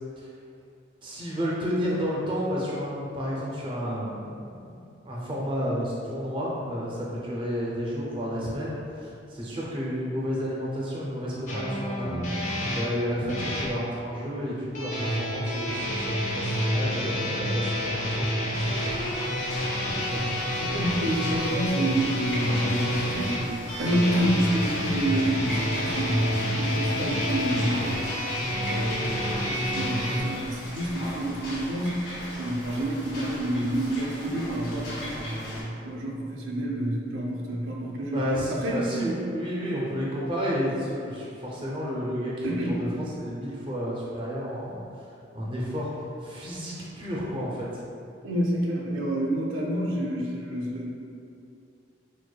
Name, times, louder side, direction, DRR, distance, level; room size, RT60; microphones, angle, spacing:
voice 1, 1.0-18.9 19.2-19.3 19.9-20.2 38.1-42.9 43.2-44.8 45.3-45.9 46.2-47.7, equal, 25° right, -6 dB, 0.4 m, -31 dB
sound 1, 11.5-13.7 14.7-30.2, equal, 40° left, 0.5 m, -28 dB
sound 2, 18.5-35.6, equal, 75° left, 1.2 m, -38 dB
voice 2, 20.6-23.4 23.8-28.0 28.7-38.9 42.4-42.9 48.2-50.9, right 1 dB, 90° right, -3 dB, 0.5 m, -28 dB
4.6 x 2.1 x 2.2 m, 2.5 s
head